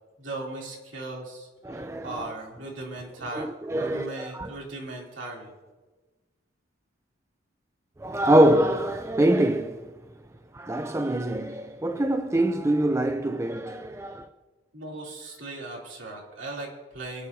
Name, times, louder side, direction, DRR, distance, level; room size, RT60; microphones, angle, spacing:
voice 1, 0.2-5.5 14.7-17.3, right 2 dB, 65° right, 3.0 m, -38 dB
voice 2, 1.6-2.3 3.3-4.5 8.0-9.9 10.5-14.3, right 1 dB, 15° right, 0.4 m, -24 dB
25.0 x 9.4 x 2.7 m
head